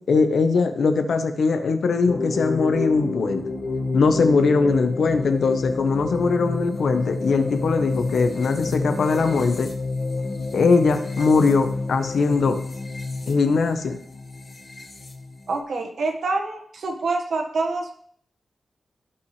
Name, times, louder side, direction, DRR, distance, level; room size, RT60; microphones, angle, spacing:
voice 1, 0.1-3.4 3.9-9.7 10.5-12.6 13.3-14.0, left 4 dB, 85° left, 7 dB, 1.1 m, -21 dB
sound 1, 2.0-15.6, left 3 dB, 35° left, 1.8 m, -30 dB
voice 2, 15.5-17.9, right 3 dB, 75° right, 3 dB, 1.6 m, -26 dB
17.0 x 5.8 x 3.3 m, 0.63 s
wide cardioid pair, 160°, 0 cm